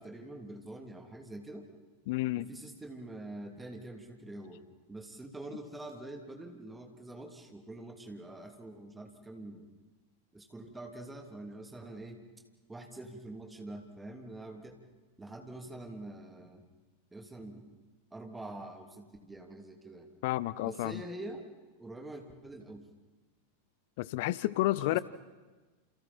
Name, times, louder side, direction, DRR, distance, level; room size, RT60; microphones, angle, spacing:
voice 1, 0.0-1.7 2.3-9.7 10.3-12.2 12.7-14.8 15.2-16.7 17.1-17.6 18.1-20.1 20.6-21.4 21.8-22.9 24.8-25.0, right 2 dB, 10° right, 3 dB, 3.0 m, -45 dB
voice 2, 2.1-2.5 20.2-20.9 24.0-25.0, left 17 dB, 50° left, 19 dB, 0.7 m, -30 dB
29.5 x 28.5 x 4.4 m, 1.3 s
figure-of-eight pair, 90°, 0 cm